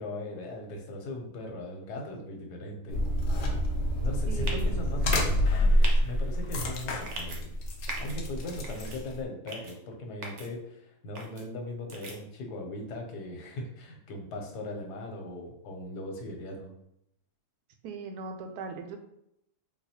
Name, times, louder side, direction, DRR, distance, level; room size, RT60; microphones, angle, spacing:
voice 1, 0.0-3.0 4.0-7.5 8.0-16.7, left 1 dB, 85° left, 2 dB, 1.3 m, -39 dB
sound 1, 2.9-9.2, left 1 dB, 65° left, 0.9 m, -27 dB
voice 2, 4.3-4.8 17.8-19.0, right 4 dB, 80° right, 6 dB, 1.1 m, -39 dB
sound 2, 4.4-4.7 5.1-5.3 5.8-5.9 7.0-7.4 7.9-8.2 8.6-9.0 9.5-9.7 10.2-10.5 11.2-11.4 11.9-12.2, right 3 dB, 60° right, 0.8 m, -39 dB
4.1 x 2.3 x 2.7 m, 0.77 s
omnidirectional pair, 1.7 m